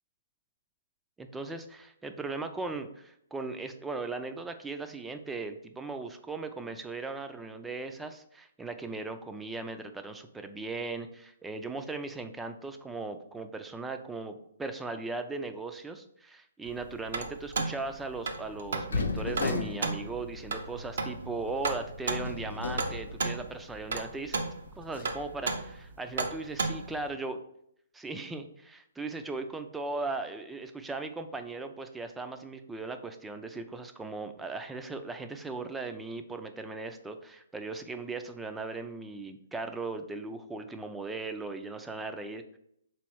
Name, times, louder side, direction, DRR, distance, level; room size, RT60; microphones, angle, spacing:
voice 1, 1.2-24.4 24.8-27.4 27.9-42.6, right 3 dB, 10° right, 7 dB, 0.4 m, -38 dB
sound 1, 16.6-27.1, right 3 dB, 70° right, 0.6 m, -35 dB
sound 2, 18.9-23.8 24.1-24.2 24.8-25.2, left 3 dB, 85° left, 0.7 m, -36 dB
3.4 x 3.1 x 4.5 m, 0.73 s
hypercardioid pair, 140°, 0 cm